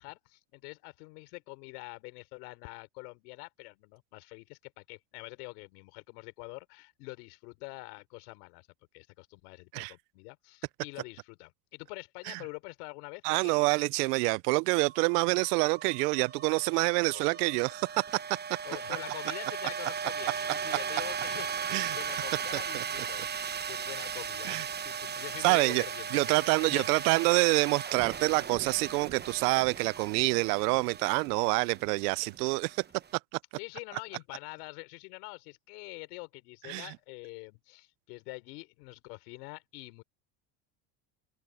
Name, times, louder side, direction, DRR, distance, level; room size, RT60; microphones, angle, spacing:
voice 1, 0.0-8.7 8.9-13.6 17.1-17.3 18.6-26.8 33.6-40.0, left 29 dB, 85° left, 3.6 m, -45 dB
voice 2, 13.2-18.0 21.7-22.0 24.4-24.7 25.4-25.9 26.1-32.8 36.7-36.9, right 26 dB, 90° right, 0.6 m, -27 dB
sound 1, 14.7-33.1, right 7 dB, 20° right, 0.9 m, -38 dB
supercardioid pair, 110°, 45 cm